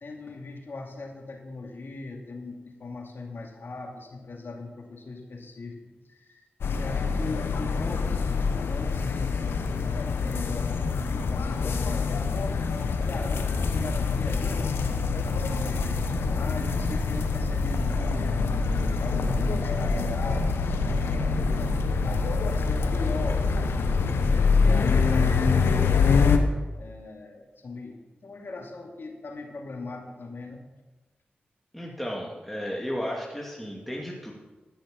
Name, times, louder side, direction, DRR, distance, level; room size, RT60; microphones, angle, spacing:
voice 1, 0.0-5.8 6.1-6.4 6.7-9.5 10.0-10.8 11.3-12.1 12.9-18.4 19.0-21.7 22.0-25.9 26.8-30.6, left 3 dB, 65° left, 2 dB, 2.3 m, -39 dB
sound 1, 6.6-26.4, left 4 dB, 90° left, 0.9 m, -25 dB
voice 2, 31.7-34.3, equal, ahead, -3 dB, 2.4 m, -34 dB
13.0 x 6.5 x 6.9 m, 1.2 s
cardioid pair, 40°, 4 cm